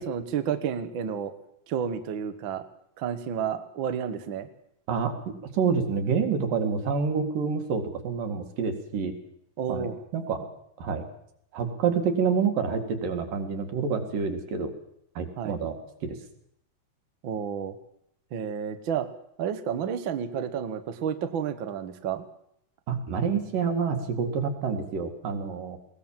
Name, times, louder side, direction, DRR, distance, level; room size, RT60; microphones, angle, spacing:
voice 1, 0.0-1.3 1.7-2.6 3.0-4.5 9.6-10.0 15.4-15.6 17.2-17.7 18.3-19.1 19.4-22.3, right 8 dB, 55° right, 9 dB, 1.4 m, -31 dB
voice 2, 4.9-9.1 9.7-9.9 10.1-10.5 10.8-11.0 11.5-14.7 15.2-16.2 22.9-25.8, right 6 dB, 80° right, 5 dB, 3.7 m, -28 dB
20.5 x 18.5 x 7.4 m, 0.74 s
omnidirectional pair, 3.8 m